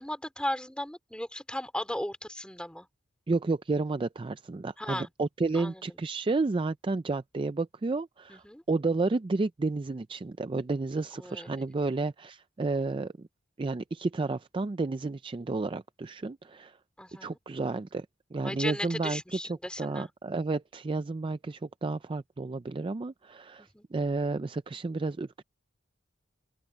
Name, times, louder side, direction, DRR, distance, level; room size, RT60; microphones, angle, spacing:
voice 1, 0.0-2.9 4.8-5.1 5.5-5.8 8.3-8.6 11.1-11.8 17.0-17.4 18.4-20.1 23.6-23.8, left 1 dB, 5° left, 3.3 m, -36 dB
voice 2, 3.3-13.3 13.6-16.8 17.2-18.1 18.3-19.2 19.5-25.4, right 3 dB, 25° right, 0.4 m, -31 dB
open air
head